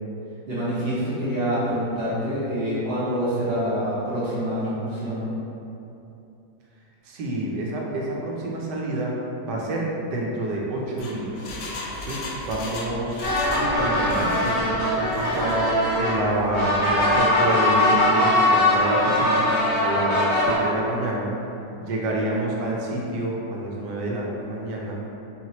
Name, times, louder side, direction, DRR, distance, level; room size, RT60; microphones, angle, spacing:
voice 1, 0.5-5.3, equal, 45° right, -11 dB, 0.9 m, -26 dB
voice 2, 7.0-9.2 9.5-11.4 12.0-13.2 13.5-21.3 21.8-25.0, right 1 dB, 70° right, -3 dB, 1.2 m, -28 dB
Engine, 10.7-13.7 14.0-14.6 15.0-15.6 15.9-16.0, left 2 dB, 85° left, 0.6 m, -36 dB
sound 1, 13.2-20.6, left 1 dB, 45° left, 1.0 m, -21 dB
4.6 x 2.9 x 2.9 m, 2.9 s
omnidirectional pair, 2.0 m